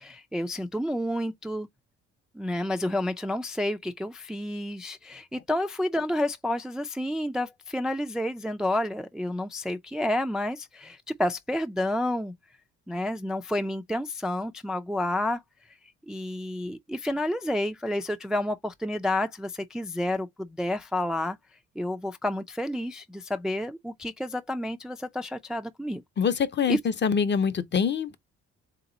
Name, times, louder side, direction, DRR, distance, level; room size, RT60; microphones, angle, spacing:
voice 1, 0.0-1.7 2.3-12.3 12.9-15.4 16.1-21.4 21.8-26.0 26.7-26.8, left 1 dB, ahead, 0.3 m, -30 dB
voice 2, 26.2-28.2, left 6 dB, 35° left, 0.6 m, -25 dB
3.5 x 2.9 x 3.8 m
cardioid pair, 90°, 30 cm